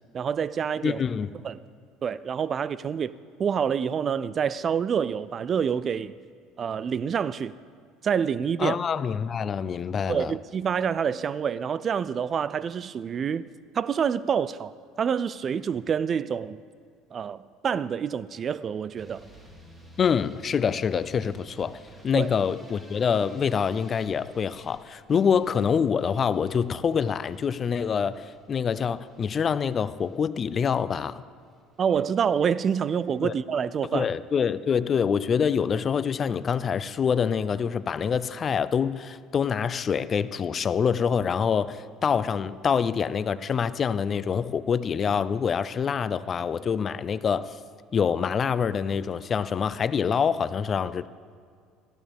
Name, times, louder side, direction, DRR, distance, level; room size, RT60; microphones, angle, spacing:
voice 1, 0.1-1.0 1.4-1.6 2.0-3.1 3.4-6.1 6.6-7.5 8.0-8.8 10.1-13.5 13.7-16.6 17.1-19.3 22.1-22.3 31.8-34.1, right 7 dB, 35° right, 0.3 m, -27 dB
voice 2, 0.8-1.3 8.6-10.3 20.0-21.8 22.0-31.2 33.2-33.3 33.9-47.5 47.9-51.1, left 7 dB, 35° left, 0.4 m, -26 dB
sound 1, 19.0-31.1 31.4-32.0 32.3-32.9 33.2-33.4 33.8-33.9 34.1-34.2, equal, 10° right, 2.3 m, -52 dB
18.5 x 14.5 x 3.5 m
cardioid pair, 115°, 0 cm